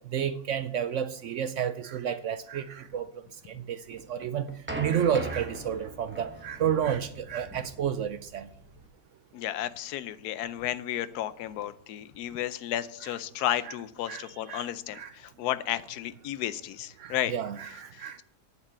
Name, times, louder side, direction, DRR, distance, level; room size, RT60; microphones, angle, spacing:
voice 1, 0.1-3.1 3.5-4.5 4.8-8.5 13.7-13.8 14.1-14.7 14.9-15.1 17.0-18.2, right 9 dB, 70° right, 12 dB, 0.7 m, -31 dB
sound 1, 3.9-8.9, right 2 dB, 10° right, 1.1 m, -40 dB
voice 2, 9.3-17.3 17.9-18.2, left 12 dB, 80° left, 14 dB, 1.1 m, -33 dB
8.9 x 6.8 x 8.1 m, 0.70 s
omnidirectional pair, 1.7 m